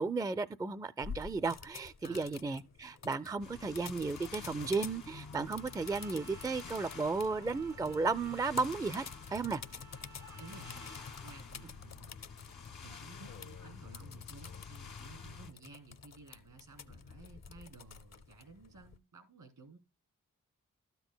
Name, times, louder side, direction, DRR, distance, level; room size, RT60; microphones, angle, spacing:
voice 1, 0.0-9.6, right 4 dB, 10° right, 0.4 m, -34 dB
sound 1, 1.0-19.0, left 6 dB, 55° left, 0.6 m, -50 dB
voice 2, 2.0-2.3 10.4-10.7 11.0-12.2 12.8-19.8, right 4 dB, 80° right, 3.1 m, -55 dB
sound 2, 3.4-15.5, left 5 dB, 85° left, 1.7 m, -49 dB
Trumpet, 5.0-11.8, right 4 dB, 60° right, 0.9 m, -58 dB
12.5 x 8.0 x 2.2 m
cardioid pair, 50°, 33 cm